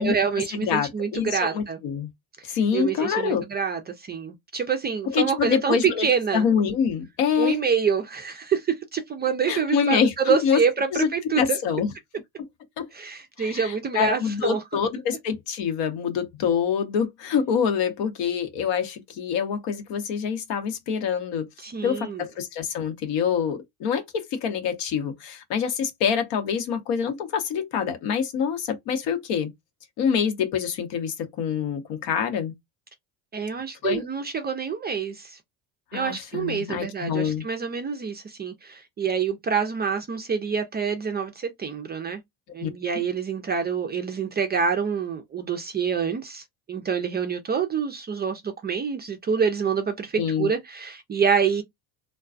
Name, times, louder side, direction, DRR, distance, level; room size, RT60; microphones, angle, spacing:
voice 1, 0.0-1.8 2.5-6.5 7.4-11.6 12.9-14.6 21.6-22.2 33.3-35.4 35.9-42.2 42.5-51.6, right 6 dB, 25° right, 0.3 m, -26 dB
voice 2, 0.5-2.1 2.4-3.5 5.1-6.1 6.3-7.6 9.5-10.6 10.9-11.1 11.3-11.9 12.8-12.9 13.4-21.5 21.8-29.5 30.0-32.5 33.8-34.1 35.9-37.4 42.6-42.7 50.2-50.5, left 7 dB, 70° left, 0.9 m, -26 dB
2.3 x 2.2 x 2.4 m
supercardioid pair, 80°, 45 cm